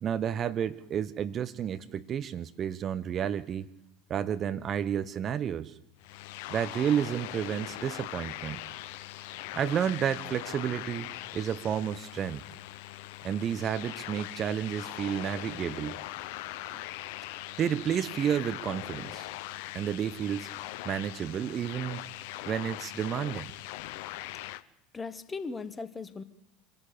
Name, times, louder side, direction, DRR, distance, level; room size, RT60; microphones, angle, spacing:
voice 1, 0.0-3.7 4.1-5.7 6.5-8.6 9.5-11.1 11.3-12.4 13.2-16.0 16.7-16.8 17.4-19.3 19.7-20.5 20.8-22.0 22.5-23.5, right 9 dB, 40° right, 15 dB, 1.1 m, -31 dB
sound 1, 6.0-24.6, left 16 dB, 65° left, 0.8 m, -41 dB
voice 2, 24.9-26.2, left 4 dB, 20° left, 13 dB, 1.5 m, -38 dB
26.0 x 12.5 x 8.7 m, 0.89 s
hypercardioid pair, 80°, 0 cm